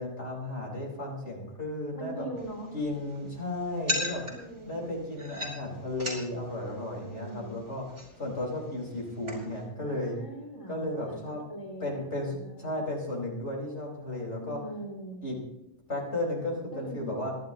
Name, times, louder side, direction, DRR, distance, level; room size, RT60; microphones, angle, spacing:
voice 1, 0.0-2.3 2.7-4.2 4.7-10.2 10.7-11.4 11.8-14.6 15.2-15.4 15.9-17.3, left 1 dB, 85° left, -2 dB, 5.3 m, -34 dB
voice 2, 1.9-2.7 4.2-4.8 7.0-7.6 9.8-12.6 14.4-15.3 16.7-17.1, right 1 dB, 30° left, 0 dB, 3.4 m, -41 dB
sound 1, 2.4-9.6, left 1 dB, 65° right, 5.4 m, -39 dB
28.0 x 11.5 x 3.0 m, 0.93 s
omnidirectional pair, 1.2 m